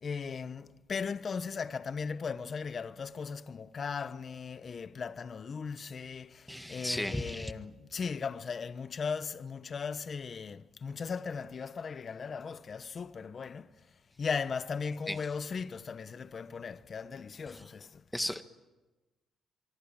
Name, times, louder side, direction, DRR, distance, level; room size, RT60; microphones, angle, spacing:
voice 1, 0.0-13.7 14.2-18.0, left 5 dB, 45° left, 1.1 m, -37 dB
voice 2, 6.5-7.5 15.1-15.3 17.5-17.6 18.1-18.4, left 1 dB, 5° left, 1.6 m, -35 dB
25.0 x 24.5 x 8.9 m
cardioid pair, 90°, 0 cm